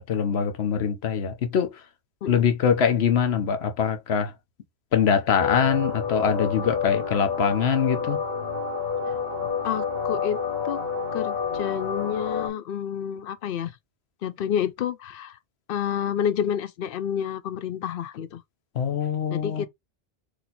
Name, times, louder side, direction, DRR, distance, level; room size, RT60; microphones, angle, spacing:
voice 1, 0.0-1.8 2.3-4.3 4.9-8.2 18.7-19.7, left 7 dB, 85° left, 1.1 m, -23 dB
sound 1, 5.4-12.5, left 6 dB, 50° left, 1.9 m, -29 dB
voice 2, 9.6-10.8 11.1-13.7 14.2-15.4 15.7-18.4 19.3-19.7, left 9 dB, 65° left, 0.7 m, -29 dB
4.3 x 2.9 x 3.8 m
omnidirectional pair, 1.0 m